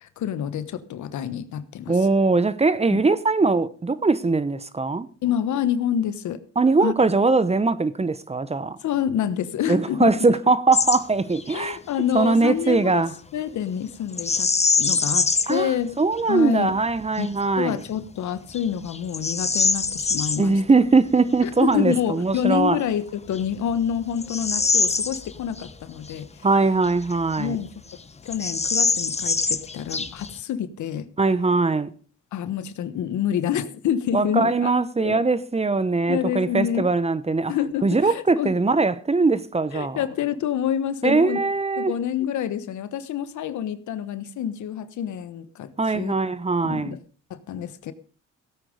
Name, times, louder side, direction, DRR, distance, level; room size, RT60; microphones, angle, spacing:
voice 1, 0.0-2.0 2.9-3.0 5.2-6.4 6.8-6.9 8.8-10.1 11.5-13.0 13.3-14.5 14.7-16.0 16.3-16.7 17.2-17.3 17.6-20.5 21.4-26.5 27.4-27.7 28.2-31.1 32.3-34.7 35.0-35.2 36.1-36.9 37.5-38.5 39.7-41.4 41.8-46.1 46.6-47.0 47.3-47.9, left 9 dB, 75° left, 1.2 m, -27 dB
voice 2, 1.9-5.1 6.6-8.8 9.7-11.8 12.1-13.1 15.5-17.8 20.4-22.8 26.4-27.6 31.2-31.9 34.1-37.5 37.8-40.0 41.0-41.9 45.8-47.0, right 3 dB, 20° right, 0.9 m, -21 dB
Bird vocalization bird call bird song, 10.7-11.0 11.3-11.6 14.1-15.6 16.2-16.3 16.9-17.3 17.9-18.0 18.5-20.4 22.5-22.6 23.3-25.7 26.0-26.1 26.8-27.6 27.9-28.0 28.3-30.4, left 4 dB, 20° left, 1.0 m, -24 dB
16.5 x 8.9 x 5.2 m
cardioid pair, 90°, 30 cm